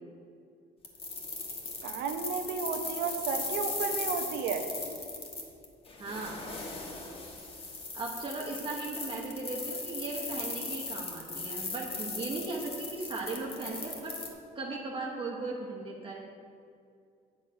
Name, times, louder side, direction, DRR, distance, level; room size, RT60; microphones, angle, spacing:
sound 1, 0.8-14.3, left 3 dB, 35° left, 1.4 m, -38 dB
voice 1, 1.8-4.7, right 6 dB, 80° right, 6 dB, 0.9 m, -33 dB
voice 2, 6.0-6.4 7.9-14.2 14.5-16.3, right 3 dB, 30° right, -1 dB, 1.0 m, -37 dB
8.6 x 6.5 x 4.9 m, 2.4 s
cardioid pair, 110°, 17 cm